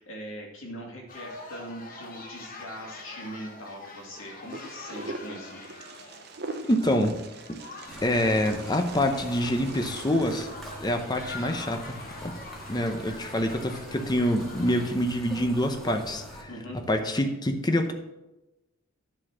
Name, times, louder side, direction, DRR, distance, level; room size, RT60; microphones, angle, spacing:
voice 1, 0.0-5.6 16.5-16.9, equal, 75° left, -1 dB, 2.3 m, -41 dB
sound 1, 1.1-15.0, left 2 dB, 40° left, 1.2 m, -45 dB
Wind, 4.5-10.5, right 3 dB, 50° right, 0.7 m, -42 dB
voice 2, 6.6-7.2 8.0-10.5 10.8-12.4 12.7-16.5 16.9-17.9, left 1 dB, 20° left, 5 dB, 0.7 m, -26 dB
sound 2, 7.9-16.4, right 1 dB, ahead, 1.5 m, -44 dB
10.5 x 4.2 x 6.1 m, 1.0 s
head